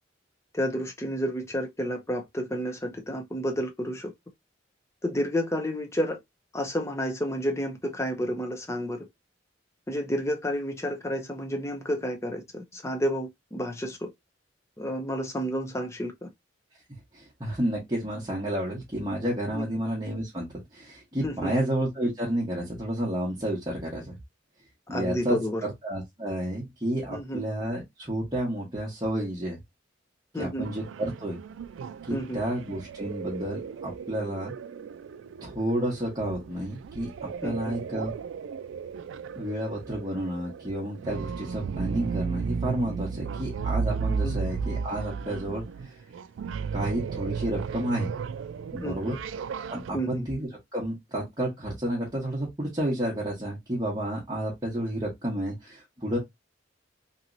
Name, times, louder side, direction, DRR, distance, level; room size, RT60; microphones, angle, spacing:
voice 1, 0.5-4.1 5.0-6.2 6.5-9.1 9.9-14.1 14.8-16.3 19.5-19.7 21.2-21.5 24.9-25.6 27.1-27.4 30.3-30.7 32.1-32.4 37.4-37.7 44.2-44.4 48.8-49.1 49.9-50.3, equal, 15° left, 0.6 m, -30 dB
voice 2, 17.1-24.2 24.9-25.4 25.6-29.6 30.4-31.4 32.1-34.5 35.4-38.1 39.4-46.0 46.7-48.1 48.7-49.2 49.7-56.2, right 1 dB, 20° right, 1.0 m, -31 dB
sound 1, 30.6-49.9, right 5 dB, 85° right, 0.3 m, -34 dB
3.0 x 2.9 x 2.5 m
head